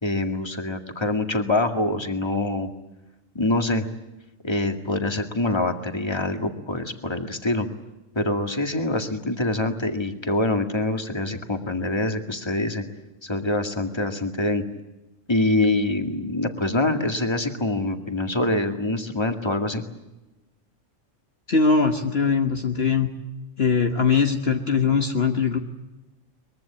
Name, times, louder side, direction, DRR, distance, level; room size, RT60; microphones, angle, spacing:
voice 1, 0.0-2.7 3.3-3.9 4.4-7.7 8.2-12.8 13.2-14.6 15.3-19.8, left 2 dB, 20° left, 5 dB, 2.1 m, -25 dB
voice 2, 21.5-23.1 23.6-25.6, left 5 dB, 55° left, 5 dB, 1.5 m, -21 dB
23.0 x 22.5 x 8.6 m, 1.0 s
omnidirectional pair, 1.3 m